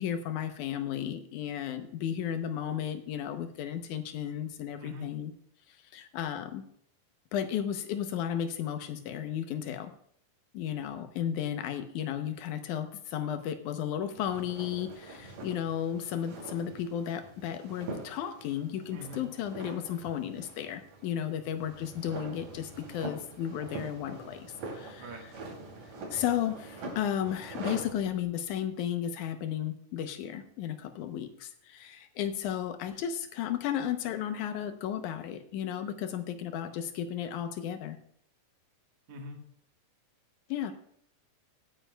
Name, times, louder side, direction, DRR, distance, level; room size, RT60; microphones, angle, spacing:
voice 1, 0.0-5.3 5.9-6.6 7.3-9.9 10.5-25.3 26.1-38.0 40.5-40.7, left 9 dB, 75° left, 9 dB, 2.2 m, -34 dB
voice 2, 4.8-5.1 18.9-19.3 25.0-25.3 39.1-39.4, left 1 dB, 55° right, 2 dB, 2.4 m, -43 dB
sound 1, 14.2-28.0, right 2 dB, 80° right, 4.3 m, -44 dB
18.0 x 9.3 x 2.3 m, 0.66 s
omnidirectional pair, 3.7 m